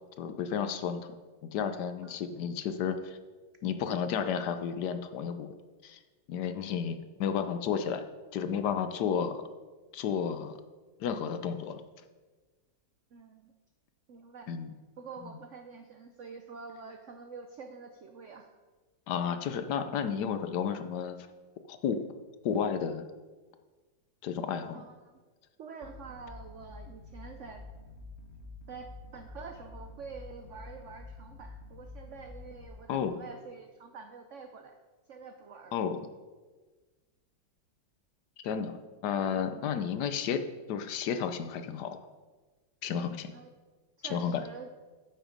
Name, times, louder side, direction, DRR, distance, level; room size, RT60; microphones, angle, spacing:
voice 1, 0.2-1.1 1.5-3.2 3.6-5.5 5.8-6.0 6.3-8.0 8.3-9.4 9.9-10.6 11.0-11.8 14.5-14.7 19.1-21.2 21.7-22.0 22.4-23.0 24.2-24.8 32.9-33.2 35.7-36.0 38.4-38.8 39.0-42.0 42.8-43.3 44.1-44.4, left 7 dB, 70° left, 9 dB, 1.2 m, -32 dB
voice 2, 13.1-13.5 14.1-14.5 15.0-18.5 24.7-25.2 25.6-27.6 28.7-34.8 35.1-35.7 43.3-43.5 44.0-44.7, right 5 dB, 75° right, 6 dB, 0.6 m, -47 dB
sound 1, 25.8-32.7, left 3 dB, 45° left, 1.1 m, -48 dB
9.2 x 8.0 x 5.2 m, 1.3 s
omnidirectional pair, 2.1 m